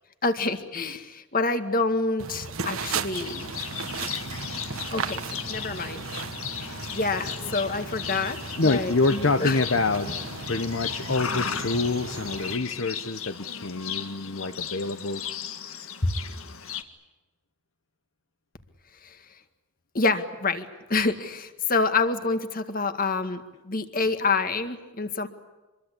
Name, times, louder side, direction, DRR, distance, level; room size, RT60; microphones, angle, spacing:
voice 1, 0.2-3.5 4.0-5.2 5.5-6.0 6.6-8.4 8.6-9.6 19.0-19.2 19.9-25.3, left 3 dB, 45° left, 8 dB, 1.9 m, -27 dB
sound 1, 2.2-12.6, right 5 dB, 80° right, 1.5 m, -36 dB
Livestock farm animals working animals, 3.1-16.8, left 7 dB, 85° left, 1.9 m, -36 dB
voice 2, 8.6-10.2 10.5-15.2, left 3 dB, 60° left, 9 dB, 0.9 m, -26 dB
26.0 x 22.5 x 8.4 m, 1.2 s
head